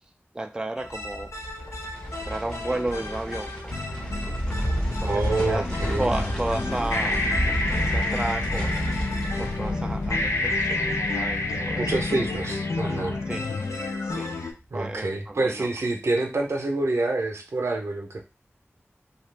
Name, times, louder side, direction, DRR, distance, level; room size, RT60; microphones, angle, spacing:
voice 1, 0.3-1.3 2.2-3.5 5.0-5.7 6.0-7.2 7.8-8.8 9.4-11.8 13.3-13.5 14.0-14.3 14.7-15.7, right 2 dB, 15° right, 5 dB, 0.4 m, -32 dB
sound 1, 0.8-14.5, left 2 dB, 90° left, 0.5 m, -29 dB
sound 2, 0.8-14.0 14.3-14.4, equal, 15° left, 1.0 m, -32 dB
voice 2, 5.0-6.0 11.8-13.2 14.7-18.2, right 2 dB, 75° right, 2 dB, 0.6 m, -27 dB
sound 3, 5.6-12.4, left 1 dB, 45° left, 0.8 m, -39 dB
2.8 x 2.4 x 3.3 m, 0.29 s
wide cardioid pair, 70°, 5 cm